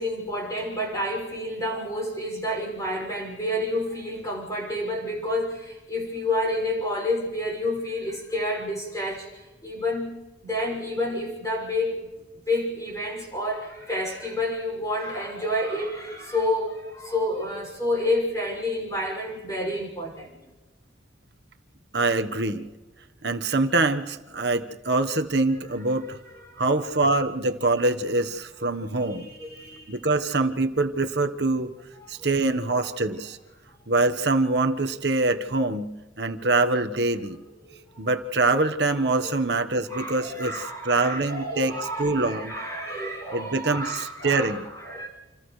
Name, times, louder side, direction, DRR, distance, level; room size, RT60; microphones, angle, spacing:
voice 1, 0.0-12.1 12.5-20.4 26.4-26.6 29.0-30.0 37.6-38.1 39.2-39.3 39.9-45.1, left 1 dB, 15° left, 0 dB, 6.2 m, -29 dB
voice 2, 21.9-22.7 23.2-26.2 26.6-29.3 29.9-31.7 32.1-33.4 33.9-35.9 36.2-37.4 38.0-42.6 43.3-44.6, right 2 dB, 60° right, 7 dB, 1.2 m, -24 dB
29.0 x 28.0 x 3.3 m, 1.2 s
head